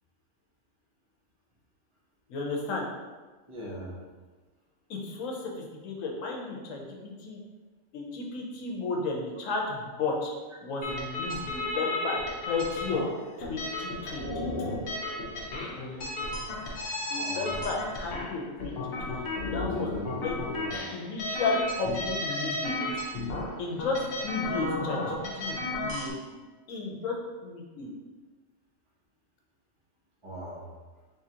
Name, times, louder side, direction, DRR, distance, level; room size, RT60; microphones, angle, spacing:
voice 1, 2.3-2.9 4.9-7.4 7.9-10.3 10.6-12.2 12.5-13.0 13.4-14.7 15.8-16.1 17.1-19.2 19.5-19.9 20.2-20.4 20.9-22.7 23.6-26.2 26.7-27.2 27.4-27.9, left 3 dB, 75° left, 0 dB, 1.1 m, -33 dB
voice 2, 3.5-4.0 17.1-17.6 19.5-20.8 30.2-30.6, equal, 25° right, -5 dB, 0.8 m, -40 dB
sound 1, 10.8-26.1, left 2 dB, 50° left, 0.8 m, -34 dB
3.7 x 3.6 x 2.8 m, 1.3 s
omnidirectional pair, 1.4 m